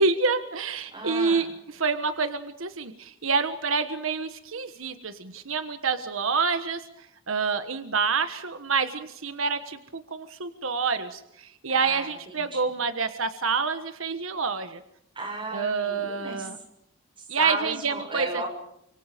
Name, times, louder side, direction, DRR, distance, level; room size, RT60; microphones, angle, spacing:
voice 1, 0.0-6.8 7.3-14.8 15.5-16.6 17.3-18.4, right 4 dB, 85° right, 10 dB, 1.4 m, -27 dB
voice 2, 0.9-1.5 11.7-12.6 15.1-16.5 17.2-18.5, right 2 dB, 25° right, 2 dB, 6.9 m, -34 dB
29.5 x 25.5 x 5.2 m, 0.78 s
head